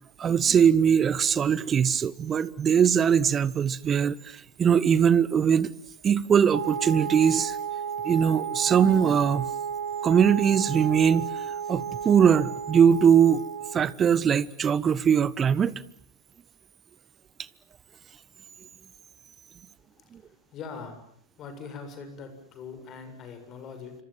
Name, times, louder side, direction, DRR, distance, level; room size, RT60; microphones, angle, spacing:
voice 1, 0.2-5.7 6.0-7.6 8.0-9.5 10.0-11.3 11.7-13.4 13.7-15.8 20.1-20.2, right 7 dB, 25° right, 1.1 m, -21 dB
Wind instrument woodwind instrument, 6.5-13.9, right 7 dB, 70° right, 4.3 m, -33 dB
voice 2, 19.9-21.0 21.4-24.0, left 5 dB, 30° left, 7.3 m, -42 dB
27.5 x 26.0 x 7.6 m
figure-of-eight pair, 90°, 0 cm